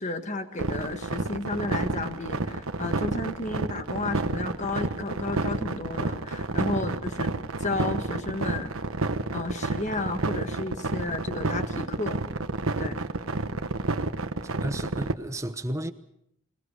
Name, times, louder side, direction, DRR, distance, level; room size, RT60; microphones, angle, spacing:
voice 1, 0.0-7.3 7.6-8.7 9.3-12.2 12.8-13.0, left 2 dB, 35° left, 1.5 m, -32 dB
sound 1, 0.6-15.1, right 3 dB, 85° right, 1.1 m, -29 dB
voice 2, 14.6-15.9, right 1 dB, 15° right, 1.0 m, -33 dB
26.0 x 18.5 x 6.6 m
head